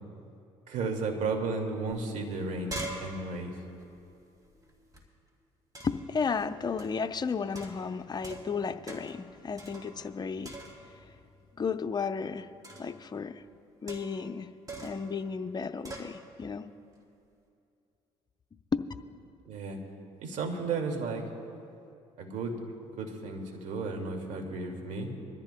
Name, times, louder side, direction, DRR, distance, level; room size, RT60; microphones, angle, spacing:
voice 1, 0.7-3.5 19.5-19.8 20.2-21.2 22.2-22.5 23.0-25.1, right 3 dB, 65° right, 3 dB, 2.2 m, -33 dB
sound 1, 1.9-2.0 2.3-5.0 5.7-6.1 6.8-7.1 7.5-8.6 8.9-9.2 9.6-10.2 10.4-11.0 12.6-13.0 13.9-14.3 14.7-15.1 15.8-16.1, right 1 dB, 25° right, 3.2 m, -43 dB
voice 2, 5.8-10.5 11.6-12.5 12.8-13.4 13.8-14.5 14.8-16.7 18.7-18.9, left 5 dB, 30° left, 8 dB, 0.7 m, -33 dB
24.5 x 14.0 x 2.3 m, 2.6 s
supercardioid pair, 70°, 14 cm